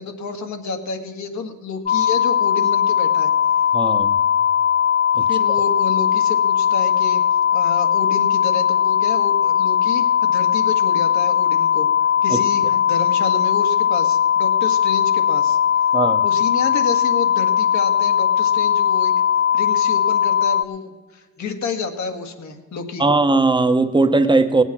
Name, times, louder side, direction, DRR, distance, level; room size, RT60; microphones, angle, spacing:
voice 1, 0.0-3.3 5.3-7.2 7.5-11.9 12.2-15.6 16.2-19.1 19.5-23.0, left 4 dB, 70° left, 5 dB, 1.8 m, -30 dB
sound 1, 1.9-20.6, left 8 dB, 25° left, 0.5 m, -18 dB
voice 2, 3.7-4.1 5.2-5.3 12.3-12.4 15.9-16.2 23.0-24.6, right 3 dB, 15° right, 8 dB, 0.9 m, -18 dB
18.0 x 8.1 x 6.0 m, 1.4 s
cardioid pair, 90°, 30 cm